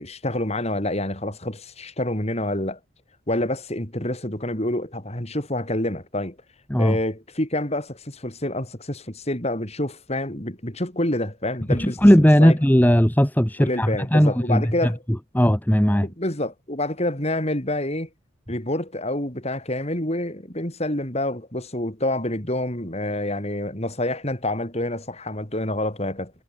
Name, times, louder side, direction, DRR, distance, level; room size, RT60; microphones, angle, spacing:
voice 1, 0.0-2.8 3.3-6.4 6.8-12.6 13.6-15.0 16.0-18.1 18.5-26.3, left 1 dB, 30° left, 4.6 m, -27 dB
voice 2, 11.8-14.6 15.3-16.1, equal, 10° left, 1.7 m, -17 dB
head